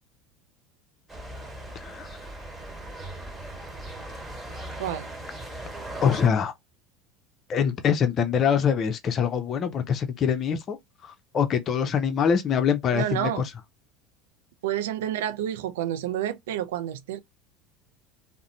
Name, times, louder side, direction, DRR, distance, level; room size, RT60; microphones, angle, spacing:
sound 1, 1.1-6.3, right 1 dB, 15° right, 1.4 m, -39 dB
voice 1, 1.7-2.1 6.0-6.5 7.5-13.5, left 7 dB, 40° left, 0.5 m, -24 dB
voice 2, 4.8-5.1 12.9-13.4 14.6-17.2, right 11 dB, 80° right, 0.3 m, -29 dB
2.5 x 2.0 x 2.6 m
hypercardioid pair, 85°, 0 cm